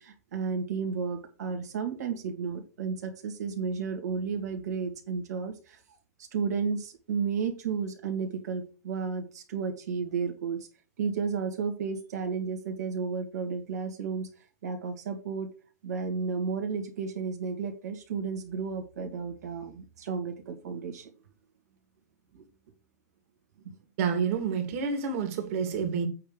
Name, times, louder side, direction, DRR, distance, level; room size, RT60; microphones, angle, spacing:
voice 1, 0.0-5.8 6.2-10.7 11.0-14.3 14.6-15.5 15.8-21.1 22.3-22.4 23.6-23.7, right 5 dB, 75° right, 2.4 m, -33 dB
voice 2, 24.0-26.1, right 6 dB, 55° right, 2.7 m, -28 dB
8.5 x 3.6 x 6.7 m
hypercardioid pair, 125°, 9 cm